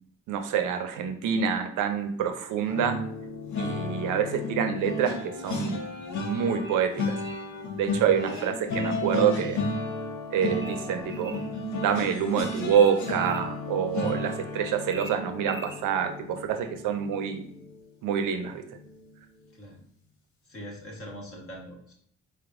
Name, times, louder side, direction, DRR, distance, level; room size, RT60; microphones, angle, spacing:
voice 1, 0.3-3.0 3.6-5.8 6.2-7.2 7.8-9.6 10.3-11.4 11.8-17.4 18.0-18.6, right 8 dB, 85° right, 7 dB, 0.6 m, -27 dB
sound 1, 2.7-17.8 18.2-18.5 18.8-19.0, left 2 dB, 70° left, 0.9 m, -33 dB
sound 2, 6.6-7.5 8.3-9.1 10.6-11.5 12.7-13.5 14.9-15.8, right 1 dB, 10° right, 0.4 m, -43 dB
voice 2, 20.4-21.9, equal, 45° left, -1 dB, 1.3 m, -43 dB
4.0 x 3.4 x 2.5 m, 0.65 s
cardioid pair, 90°, 30 cm